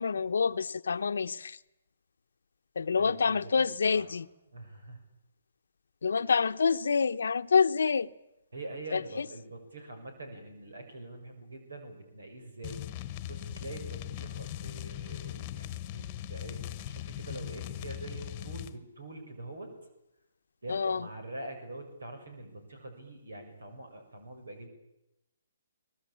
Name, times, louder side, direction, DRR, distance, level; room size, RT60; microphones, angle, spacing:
voice 1, 0.0-1.6 2.8-4.3 6.0-8.1 8.9-9.3 20.7-21.1, left 5 dB, 75° left, 0.9 m, -27 dB
voice 2, 3.0-3.5 3.8-4.0 4.5-5.0 8.5-12.8 13.3-19.7 20.6-24.7, right 2 dB, 85° right, 6.7 m, -44 dB
sound 1, 12.6-18.8, left 12 dB, 30° left, 1.2 m, -39 dB
23.5 x 20.0 x 8.7 m
hypercardioid pair, 150°, 0 cm